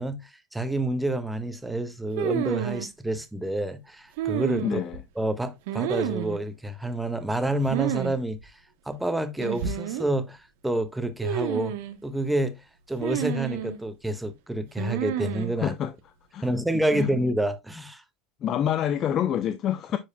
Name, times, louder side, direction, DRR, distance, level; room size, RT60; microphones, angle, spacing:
voice 1, 0.0-4.8 5.2-8.4 8.9-10.4 10.6-11.7 12.0-12.6 12.9-15.7 16.4-18.0, right 1 dB, 5° right, 1.3 m, -28 dB
sound 1, 2.2-2.9 4.2-5.0 5.7-6.4 7.7-8.1 8.4-8.5 9.4-10.1 11.2-12.0 13.0-13.8 14.8-15.5, right 10 dB, 70° right, 1.0 m, -30 dB
voice 2, 4.6-5.0 15.6-15.9 16.3-16.5 17.0-17.1 18.4-20.0, left 10 dB, 45° left, 0.6 m, -27 dB
9.7 x 4.7 x 2.2 m
hypercardioid pair, 85°, 0 cm